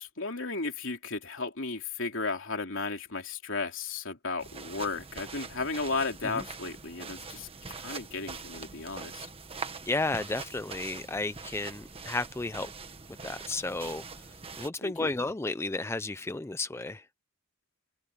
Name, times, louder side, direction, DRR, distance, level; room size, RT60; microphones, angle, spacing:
voice 1, 0.0-9.3 14.8-15.1, left 3 dB, 65° left, 3.5 m, -34 dB
sound 1, 4.4-14.7, right 4 dB, 30° right, 1.5 m, -43 dB
voice 2, 9.9-12.7 13.2-14.1 14.6-17.1, left 2 dB, 10° left, 0.4 m, -33 dB
head